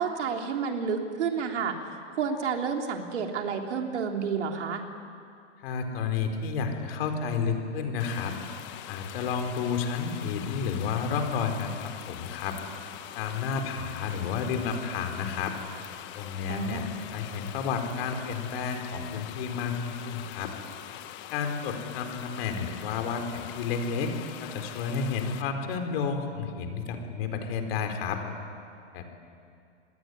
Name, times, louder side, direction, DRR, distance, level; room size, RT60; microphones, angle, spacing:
voice 1, 0.0-1.8 2.2-4.8 16.5-16.9, right 6 dB, 70° right, 3 dB, 3.4 m, -30 dB
voice 2, 5.6-8.3 8.9-12.6 13.1-15.5 16.1-20.5 21.3-24.1 24.4-28.2 28.9-29.0, left 6 dB, 55° left, 5 dB, 4.5 m, -31 dB
sound 1, 8.0-25.4, left 13 dB, 30° left, 1.3 m, -43 dB
26.5 x 20.5 x 9.8 m, 2.4 s
hypercardioid pair, 130°, 36 cm